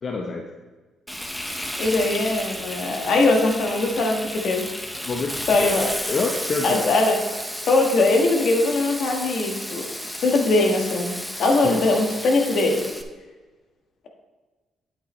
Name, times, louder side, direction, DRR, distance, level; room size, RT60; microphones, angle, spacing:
voice 1, 0.0-0.4 5.0-6.9 11.6-12.1, left 3 dB, 45° left, 1 dB, 0.9 m, -28 dB
Frying (food), 1.1-13.0, equal, 5° left, 0.8 m, -32 dB
voice 2, 1.8-4.7 5.5-5.9 6.6-7.2 7.7-9.8 10.2-11.1 11.4-12.8, left 2 dB, 65° left, 2 dB, 1.5 m, -21 dB
9.1 x 8.4 x 3.2 m, 1.3 s
cardioid pair, 90°, 0 cm